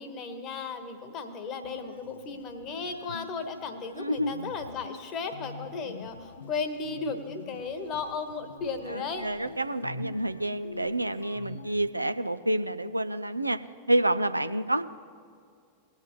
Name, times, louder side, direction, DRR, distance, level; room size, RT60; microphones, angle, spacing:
voice 1, 0.0-9.3, left 4 dB, 35° left, 7 dB, 1.3 m, -35 dB
sound 1, 1.6-11.9, left 3 dB, 70° left, 0.6 m, -45 dB
voice 2, 4.0-4.5 8.9-13.6 13.9-14.8, right 1 dB, 85° right, 12 dB, 0.4 m, -28 dB
20.5 x 8.0 x 3.1 m, 2.3 s
figure-of-eight pair, 90°, 0 cm